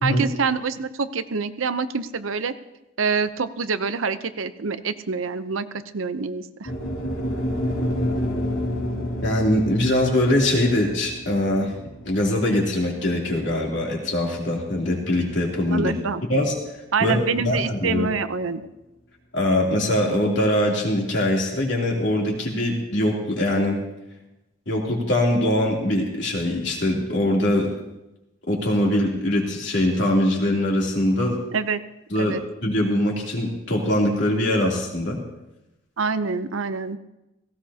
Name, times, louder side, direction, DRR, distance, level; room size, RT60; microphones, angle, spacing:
voice 1, 0.0-2.5 3.0-5.7 5.9-6.7 15.7-16.2 16.9-18.7 31.5-31.8 32.2-32.4 36.0-37.0, right 5 dB, 90° right, 11 dB, 0.7 m, -26 dB
sound 1, 6.6-14.9, equal, 90° left, 2.6 m, -29 dB
voice 2, 9.2-11.7 12.0-15.9 16.3-16.5 17.0-18.1 19.3-23.8 24.7-27.7 28.5-31.4 32.1-35.2, left 1 dB, 65° left, -2 dB, 3.1 m, -22 dB
17.0 x 16.5 x 2.8 m, 0.94 s
head